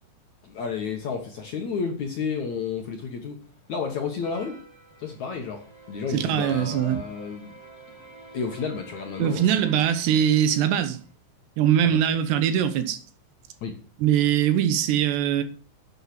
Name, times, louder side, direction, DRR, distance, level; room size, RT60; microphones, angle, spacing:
voice 1, 0.4-3.4 3.7-4.6 5.0-7.6 8.3-9.8 11.8-12.0 13.6-13.8, left 5 dB, 60° left, 2.0 m, -31 dB
sound 1, 4.2-11.1, right 2 dB, 30° right, 0.4 m, -49 dB
voice 2, 6.1-7.0 9.2-11.0 11.6-13.0 14.0-15.4, right 10 dB, 75° right, 3.2 m, -22 dB
11.0 x 8.4 x 6.0 m
omnidirectional pair, 5.0 m